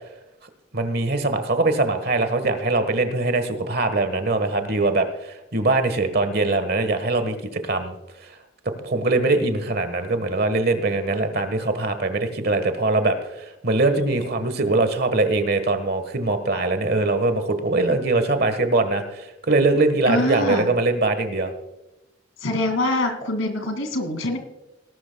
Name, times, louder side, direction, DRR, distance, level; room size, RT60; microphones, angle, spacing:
voice 1, 0.7-7.9 8.2-8.3 8.8-21.5, right 2 dB, 50° right, 9 dB, 1.4 m, -22 dB
voice 2, 13.8-14.2 20.1-20.7 22.4-24.4, left 2 dB, 90° left, 6 dB, 2.4 m, -25 dB
19.0 x 12.0 x 2.3 m, 0.98 s
head